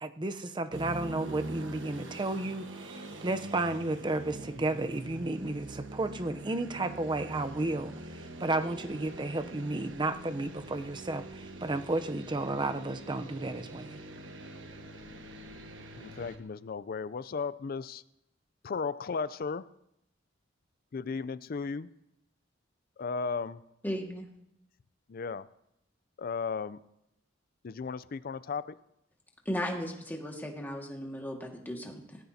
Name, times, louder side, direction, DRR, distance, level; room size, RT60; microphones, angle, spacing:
voice 1, 0.0-14.0, right 2 dB, 25° right, 9 dB, 0.6 m, -33 dB
sound 1, 0.7-16.4, right 1 dB, 70° right, 1.3 m, -44 dB
voice 2, 16.0-18.0 18.6-19.7 20.9-21.9 23.0-23.6 25.1-25.5 26.2-26.8 27.6-28.7, left 5 dB, 50° left, 17 dB, 0.4 m, -35 dB
voice 3, 23.8-24.3 29.5-32.2, equal, 10° left, 1 dB, 1.8 m, -36 dB
18.5 x 15.0 x 2.8 m, 0.83 s
head